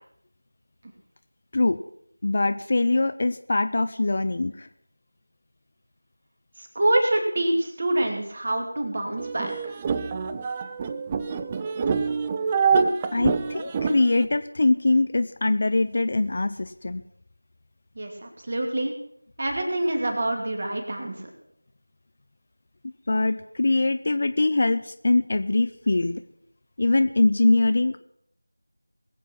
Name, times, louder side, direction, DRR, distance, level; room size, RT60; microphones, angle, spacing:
voice 1, 2.2-4.7 13.1-17.0 22.8-26.2 26.8-28.0, left 2 dB, 35° left, 11 dB, 0.6 m, -23 dB
voice 2, 6.6-9.8 18.0-18.9 19.4-21.3, right 1 dB, 35° right, 3 dB, 2.8 m, -26 dB
sound 1, 9.2-14.3, right 5 dB, 15° right, 0.4 m, -26 dB
21.0 x 8.3 x 5.8 m, 0.71 s
figure-of-eight pair, 170°, 0 cm